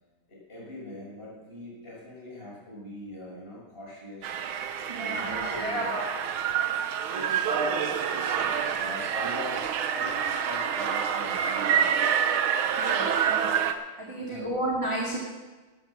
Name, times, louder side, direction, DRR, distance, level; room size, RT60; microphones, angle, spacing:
voice 1, 0.3-4.4 4.9-5.9 7.1-7.9 8.4-11.9 14.1-14.5, equal, 25° left, -5 dB, 6.5 m, -40 dB
sound 1, 4.2-13.7, right 8 dB, 85° right, 1.8 m, -27 dB
voice 2, 4.9-6.1 12.8-13.5 14.0-15.2, right 1 dB, 15° right, -4 dB, 2.0 m, -32 dB
13.0 x 12.5 x 6.2 m, 1.2 s
omnidirectional pair, 2.2 m